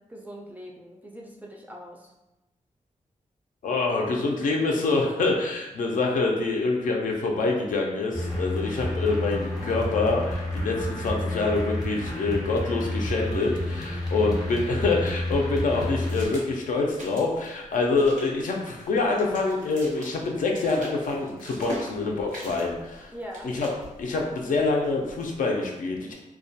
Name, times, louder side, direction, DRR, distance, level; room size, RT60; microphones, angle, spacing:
voice 1, 0.0-2.1 13.9-14.1 17.7-18.1 23.1-23.5, equal, 10° right, -1 dB, 0.3 m, -42 dB
voice 2, 3.6-23.1 23.4-23.7 24.0-26.1, left 3 dB, 80° left, 0 dB, 0.4 m, -26 dB
sound 1, 8.1-16.3, left 1 dB, 30° left, 0.7 m, -30 dB
sound 2, 14.7-25.4, right 1 dB, 85° right, 0.9 m, -44 dB
2.2 x 2.2 x 2.6 m, 0.97 s
wide cardioid pair, 130°, 13 cm